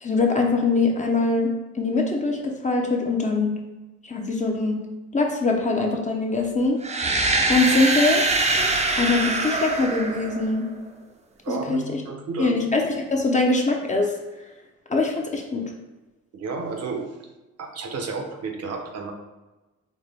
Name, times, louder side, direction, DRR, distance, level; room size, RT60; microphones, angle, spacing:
voice 1, 0.0-1.5 1.8-3.5 4.1-4.8 5.1-6.8 7.5-8.2 9.0-10.7 11.5-11.8 12.4-14.1 14.9-15.6, left 3 dB, 25° left, 1 dB, 0.7 m, -22 dB
sound 1, 6.8-10.7, right 2 dB, 20° right, 0.6 m, -23 dB
voice 2, 11.4-12.6 16.3-17.1 17.6-19.1, right 4 dB, 55° right, 4 dB, 0.8 m, -31 dB
4.4 x 2.9 x 3.4 m, 1.1 s
cardioid pair, 90°, 30 cm